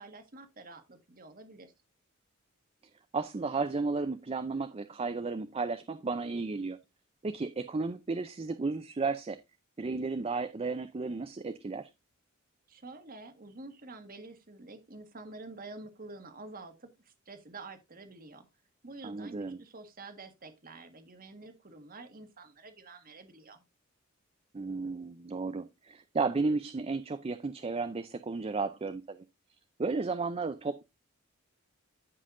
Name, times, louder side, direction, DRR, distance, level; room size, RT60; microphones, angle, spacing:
voice 1, 0.0-1.7 12.7-18.5 18.8-23.6, right 3 dB, 45° right, 1.5 m, -48 dB
voice 2, 3.1-6.8 7.2-9.4 9.8-11.9 19.0-19.6 24.5-29.3 29.8-30.8, right 4 dB, 30° right, 0.4 m, -33 dB
15.0 x 5.5 x 2.5 m
head